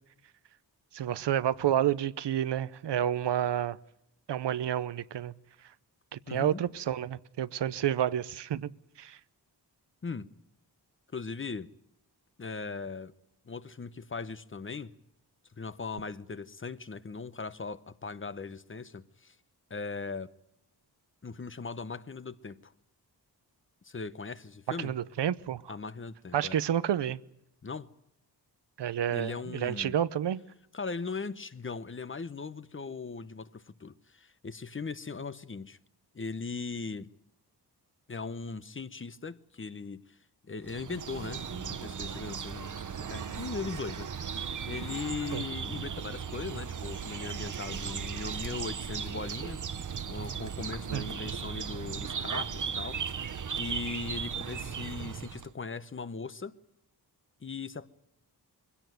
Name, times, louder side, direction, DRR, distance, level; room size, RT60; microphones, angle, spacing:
voice 1, 0.9-3.8 4.3-5.3 6.1-8.7 9.0-9.2 24.8-25.7 26.3-27.2 28.8-30.4 45.3-45.4 50.9-51.1, right 10 dB, 90° right, 0.8 m, -30 dB
voice 2, 6.3-6.6 10.0-10.3 11.1-11.7 12.4-13.1 13.5-14.9 15.6-19.4 19.7-20.3 21.2-22.7 23.8-24.9 25.7-26.6 27.6-27.9 29.1-30.0 30.7-35.8 36.1-37.1 38.1-40.0 40.4-49.6 50.1-56.6 57.4-57.9, left 4 dB, 30° left, 0.8 m, -39 dB
sound 1, 40.6-55.5, right 7 dB, 50° right, 0.9 m, -37 dB
23.0 x 17.0 x 9.3 m
wide cardioid pair, 120°, 41 cm